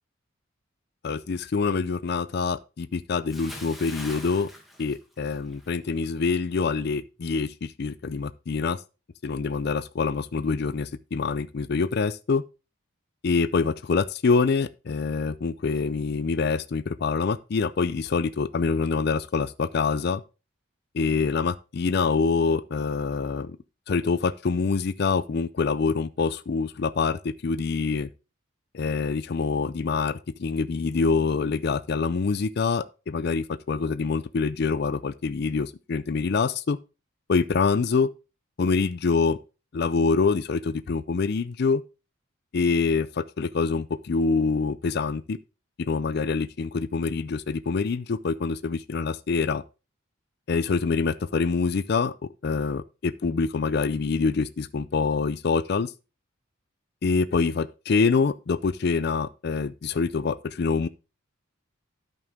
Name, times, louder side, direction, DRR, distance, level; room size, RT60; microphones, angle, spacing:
voice 1, 1.0-4.5 4.8-8.8 9.2-12.4 13.2-20.2 20.9-23.6 23.9-28.1 28.7-36.8 37.3-38.1 38.6-39.4 39.7-41.8 42.5-45.4 45.8-49.6 50.5-52.1 52.4-55.9 57.0-60.9, left 4 dB, 50° left, 0.4 m, -25 dB
Bathtub (filling or washing) / Splash splatter, 3.3-5.7 6.0-6.3, left 1 dB, ahead, 1.3 m, -43 dB
12.5 x 5.4 x 3.6 m
head